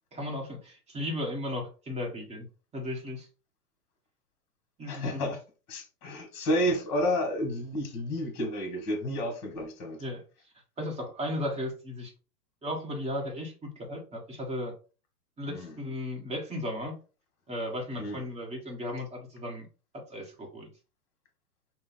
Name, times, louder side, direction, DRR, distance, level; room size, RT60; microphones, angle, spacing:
voice 1, 0.1-2.5 2.7-3.3 4.8-5.3 10.0-10.2 10.8-12.1 12.6-14.7 15.4-16.9 17.5-19.6 19.9-20.7, left 1 dB, 15° right, 1.3 m, -35 dB
voice 2, 4.9-5.4 5.7-10.0 15.4-15.7 18.0-18.2, equal, 35° left, 2.0 m, -31 dB
5.5 x 2.4 x 4.1 m
hypercardioid pair, 125°, 48 cm